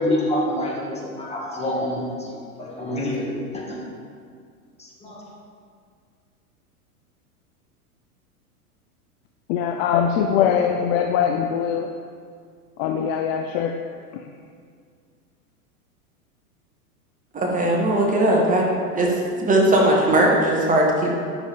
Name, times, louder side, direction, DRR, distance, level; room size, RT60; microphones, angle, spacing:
voice 1, 0.0-2.3 2.6-3.2 3.5-3.8 4.8-5.2, left 1 dB, 15° left, -3 dB, 2.1 m, -26 dB
voice 2, 9.5-11.9 12.8-13.8, left 8 dB, 40° left, 5 dB, 0.6 m, -22 dB
voice 3, 17.3-18.7 18.9-21.1, right 1 dB, 15° right, -2 dB, 1.6 m, -19 dB
9.7 x 7.0 x 3.7 m, 2.1 s
hypercardioid pair, 105°, 46 cm